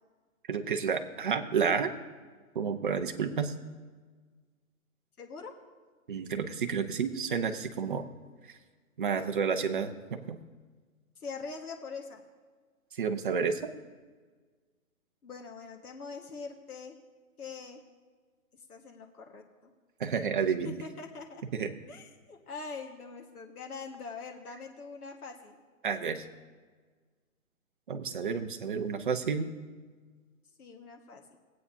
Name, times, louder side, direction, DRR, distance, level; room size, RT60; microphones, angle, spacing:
voice 1, 0.5-1.9 2.5-3.5 6.1-8.0 9.0-10.4 12.9-13.7 20.0-20.7 21.5-21.7 25.8-26.2 27.9-29.5, right 6 dB, 35° right, 6 dB, 0.7 m, -30 dB
voice 2, 5.2-5.5 11.2-12.2 15.2-17.0 17.4-17.8 18.7-19.7 20.8-21.4 21.9-25.6 30.6-31.4, left 4 dB, 80° left, 2 dB, 1.6 m, -43 dB
20.5 x 8.4 x 2.7 m, 1.5 s
hypercardioid pair, 165°, 44 cm